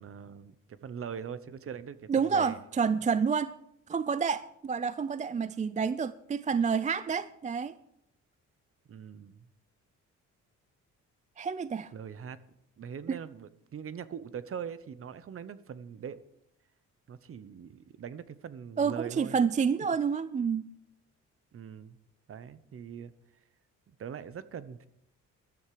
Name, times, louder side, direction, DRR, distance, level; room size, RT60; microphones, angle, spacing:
voice 1, 0.0-2.6 8.9-9.5 11.9-12.4 12.8-16.2 17.1-19.4 21.5-22.0 22.3-23.1 24.0-24.9, right 7 dB, 45° right, 15 dB, 0.9 m, -42 dB
voice 2, 2.1-3.5 3.9-7.7 11.4-11.9 13.1-13.2 18.8-20.7, right 6 dB, 25° right, 15 dB, 0.4 m, -29 dB
14.5 x 12.0 x 4.9 m, 0.77 s
cardioid pair, 110°, 31 cm